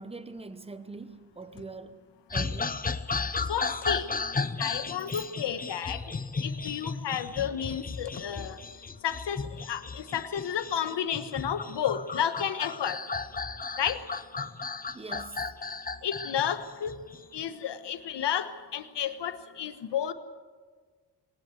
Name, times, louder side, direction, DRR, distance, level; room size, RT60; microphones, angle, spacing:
voice 1, 0.0-2.0 2.3-2.8 14.9-15.5, right 3 dB, 15° right, 1.0 m, -42 dB
sound 1, 2.3-17.4, left 4 dB, 20° left, 0.7 m, -35 dB
voice 2, 3.5-6.0 6.4-8.6 9.0-13.0 13.8-14.0 16.0-16.9 17.3-20.1, left 9 dB, 80° left, 1.4 m, -32 dB
20.5 x 19.0 x 7.9 m
wide cardioid pair, 135°, 41 cm